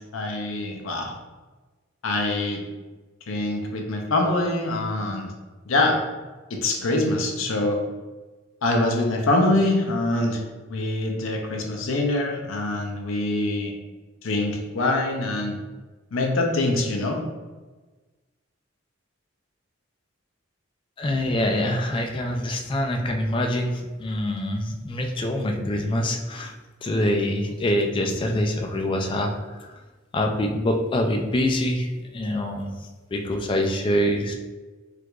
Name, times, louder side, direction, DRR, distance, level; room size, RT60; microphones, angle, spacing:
voice 1, 0.1-1.1 2.0-2.6 3.3-5.3 5.7-6.0 6.5-7.8 8.6-10.4 10.7-13.7 14.2-15.6 16.1-17.2, left 2 dB, 85° left, 2 dB, 0.6 m, -24 dB
voice 2, 21.0-26.5 26.8-29.7 30.1-32.7 33.1-34.3, left 1 dB, 25° left, 3 dB, 0.3 m, -25 dB
4.5 x 2.5 x 2.3 m, 1.3 s
head